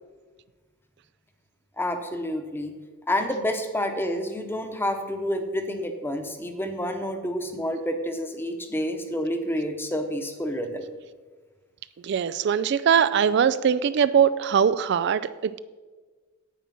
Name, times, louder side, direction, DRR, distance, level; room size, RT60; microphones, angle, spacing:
voice 1, 1.8-2.7 3.1-10.9, equal, 10° left, 6 dB, 0.9 m, -29 dB
voice 2, 12.0-15.6, right 7 dB, 55° right, 14 dB, 0.3 m, -21 dB
9.2 x 8.6 x 5.9 m, 1.4 s
head